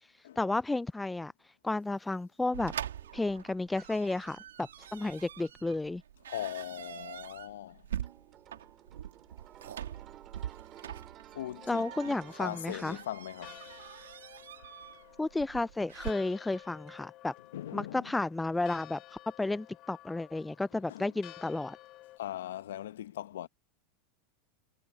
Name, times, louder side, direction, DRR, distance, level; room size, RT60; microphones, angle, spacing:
voice 1, 0.4-1.3 1.6-2.7 3.1-6.0 11.7-13.0 15.2-17.3 17.7-21.8, left 2 dB, 10° left, 0.4 m, -32 dB
sound 1, 2.5-16.1, right 10 dB, 85° right, 1.5 m, -44 dB
sound 2, 2.8-5.4 8.0-15.9 16.5-17.1, right 12 dB, 40° right, 2.4 m, -56 dB
voice 2, 6.3-7.9 11.3-13.6 17.5-18.1 20.9-21.2 22.2-23.5, left 12 dB, 80° left, 1.2 m, -40 dB
Church bell, 11.6-22.2, left 16 dB, 45° left, 5.7 m, -53 dB
hypercardioid pair, 100°, 0 cm